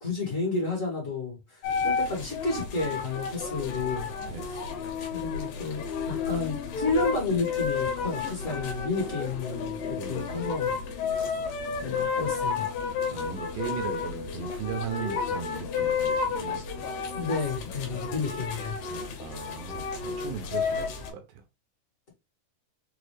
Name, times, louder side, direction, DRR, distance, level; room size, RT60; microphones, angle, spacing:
voice 1, 0.0-4.1 4.3-4.6 5.1-10.7 11.1-11.4 11.8-12.7 17.1-18.7, left 3 dB, 35° left, 1.4 m, -31 dB
sound 1, 1.6-21.1, left 5 dB, 85° left, 2.6 m, -32 dB
sound 2, 6.3-18.4, left 5 dB, 65° left, 2.7 m, -45 dB
voice 2, 10.0-10.5 13.1-16.6 18.9-21.4, right 7 dB, 80° right, 2.3 m, -38 dB
6.2 x 2.3 x 3.2 m
omnidirectional pair, 3.9 m